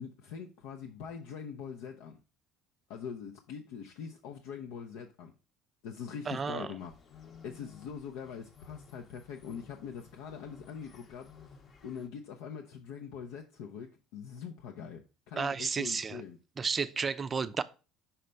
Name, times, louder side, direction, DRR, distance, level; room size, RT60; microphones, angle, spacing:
voice 1, 0.0-2.2 2.9-5.3 5.8-11.5 11.8-16.4, left 7 dB, 80° left, 0.6 m, -43 dB
voice 2, 6.3-6.7 15.4-16.2 16.6-17.6, right 5 dB, 25° right, 0.4 m, -32 dB
sound 1, 6.8-12.1, left 6 dB, 40° left, 0.8 m, -55 dB
5.7 x 3.3 x 5.2 m
cardioid pair, 120°, 0 cm